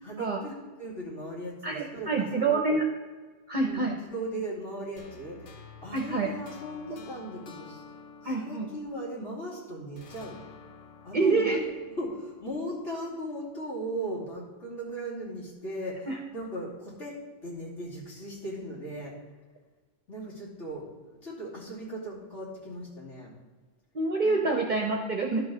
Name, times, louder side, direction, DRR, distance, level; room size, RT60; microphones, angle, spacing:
voice 1, 0.0-2.8 3.6-7.8 8.2-10.4 11.0-11.6 12.0-19.1 20.1-23.3 24.2-24.3, right 1 dB, 70° left, -6 dB, 3.0 m, -38 dB
voice 2, 1.6-2.9 3.5-4.0 5.9-6.3 8.2-8.7 11.1-11.6 16.1-16.2 23.9-25.4, right 3 dB, 45° right, 1 dB, 0.8 m, -26 dB
sound 1, 5.0-9.5 10.0-13.0, left 5 dB, 90° left, 1.4 m, -50 dB
11.5 x 6.3 x 3.8 m, 1.4 s
omnidirectional pair, 1.3 m